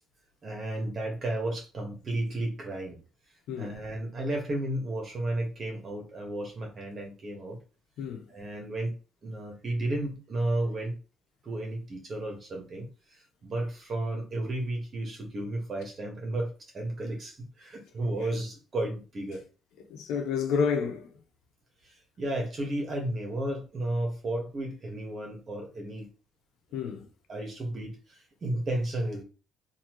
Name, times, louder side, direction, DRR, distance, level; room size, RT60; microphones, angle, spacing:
voice 1, 0.4-3.0 3.6-7.6 8.3-8.9 9.2-11.0 11.4-19.4 21.8-26.1 26.9-27.0 27.3-29.2, right 1 dB, 40° right, 1.7 m, -33 dB
voice 2, 3.5-3.8 8.0-8.3 19.9-21.1 26.7-27.1, left 6 dB, 85° left, 0.9 m, -30 dB
4.0 x 2.9 x 3.1 m
cardioid pair, 120°, 0 cm